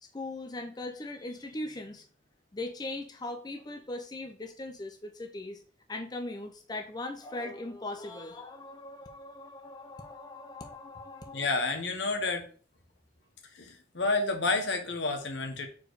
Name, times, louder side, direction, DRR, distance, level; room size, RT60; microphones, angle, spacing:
voice 1, 0.0-2.0 2.5-5.6 5.9-11.6, left 2 dB, 20° left, 4 dB, 0.6 m, -39 dB
voice 2, 11.3-12.4 13.5-15.7, left 3 dB, 70° left, 5 dB, 1.2 m, -30 dB
4.5 x 4.4 x 4.7 m, 0.42 s
head